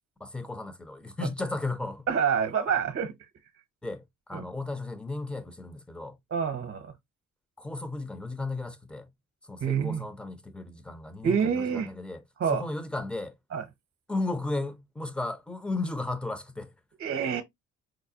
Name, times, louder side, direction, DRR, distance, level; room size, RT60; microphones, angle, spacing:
voice 1, 0.2-2.1 3.8-6.2 7.6-9.1 9.5-12.2 12.5-13.3 14.1-16.7, left 2 dB, 5° left, 0.6 m, -34 dB
voice 2, 2.1-3.1 4.3-4.5 6.3-6.9 9.6-10.0 11.2-11.9 12.4-12.6 13.5-13.6 17.0-17.4, right 7 dB, 45° right, 0.7 m, -27 dB
4.9 x 2.1 x 2.6 m
cardioid pair, 90°, 30 cm